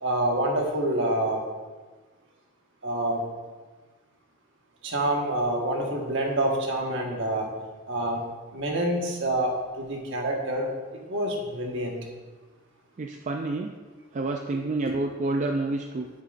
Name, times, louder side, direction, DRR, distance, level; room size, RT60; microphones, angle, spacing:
voice 1, 0.0-1.4 2.8-3.2 4.8-7.5 7.9-8.2 8.5-12.0 14.9-15.0, right 1 dB, 65° right, 0 dB, 1.4 m, -27 dB
voice 2, 13.0-13.7 14.1-16.1, right 2 dB, 35° right, 4 dB, 0.4 m, -28 dB
10.0 x 7.0 x 2.5 m, 1.3 s
head